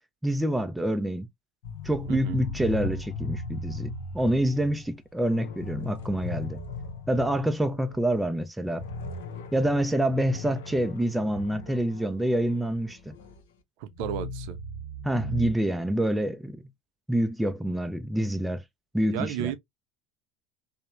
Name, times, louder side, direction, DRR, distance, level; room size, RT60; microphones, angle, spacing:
voice 1, 0.2-1.3 1.8-6.6 7.1-8.8 9.5-13.1 15.0-16.6 17.1-18.6 18.9-19.5, right 1 dB, 5° right, 0.4 m, -27 dB
sound 1, 1.6-8.1 8.4-8.5 8.8-13.4 13.9-15.5, left 2 dB, 75° left, 0.6 m, -37 dB
voice 2, 13.8-14.6 19.1-19.6, right 11 dB, 65° right, 0.5 m, -33 dB
2.9 x 2.0 x 2.2 m
hypercardioid pair, 80°, 0 cm